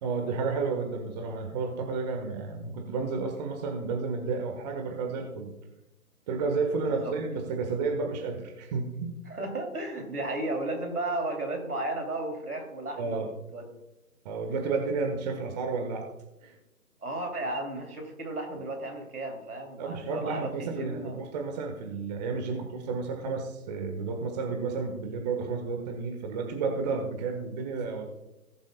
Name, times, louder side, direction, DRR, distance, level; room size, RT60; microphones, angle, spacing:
voice 1, 0.0-5.5 6.3-9.2 13.0-13.3 14.2-16.1 16.4-16.6 19.8-28.1, right 4 dB, 30° right, 3 dB, 1.4 m, -31 dB
voice 2, 6.8-7.1 9.3-13.7 17.0-21.3, right 2 dB, 80° right, 3 dB, 3.0 m, -34 dB
18.5 x 7.8 x 2.3 m, 0.96 s
figure-of-eight pair, 140°, 44 cm